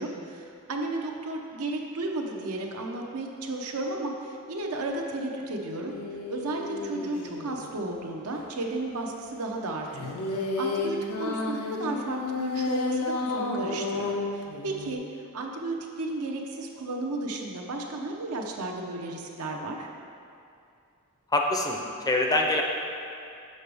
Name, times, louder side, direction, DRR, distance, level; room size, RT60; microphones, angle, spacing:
voice 1, 0.0-5.9 6.3-15.0 15.3-19.9, right 2 dB, 85° right, 1 dB, 0.7 m, -33 dB
sound 1, 5.9-7.7 9.9-15.0, left 3 dB, 80° left, 0.6 m, -31 dB
voice 2, 21.3-21.8 22.1-22.6, left 2 dB, 15° left, 1 dB, 0.5 m, -24 dB
6.5 x 5.9 x 3.4 m, 2.5 s
head